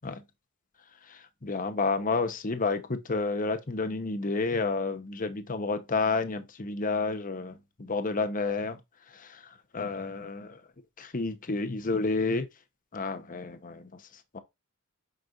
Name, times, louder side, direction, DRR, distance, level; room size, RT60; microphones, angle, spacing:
voice 1, 1.1-8.8 9.1-10.6 11.0-12.5 12.9-14.0 14.3-14.4, left 3 dB, 40° left, 0.9 m, -30 dB
8.0 x 5.4 x 2.5 m
head